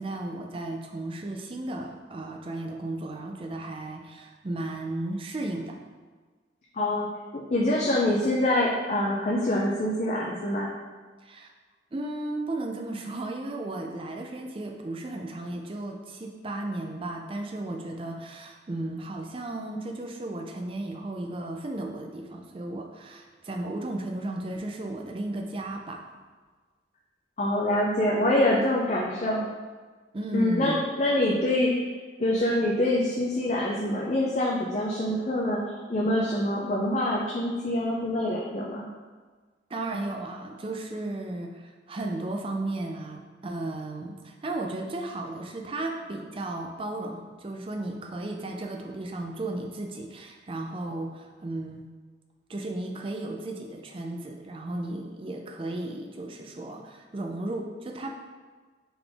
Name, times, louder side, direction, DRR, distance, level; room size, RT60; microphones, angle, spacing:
voice 1, 0.0-5.8 11.2-11.5 11.9-26.0 30.1-30.8 39.7-51.9 52.5-58.2, right 2 dB, 30° right, 2 dB, 0.4 m, -34 dB
voice 2, 6.7-7.1 7.3-10.7 27.4-29.5 30.3-31.9 32.2-35.6 35.9-38.9, left 1 dB, 40° left, -3 dB, 0.4 m, -25 dB
3.9 x 3.7 x 3.4 m, 1.4 s
head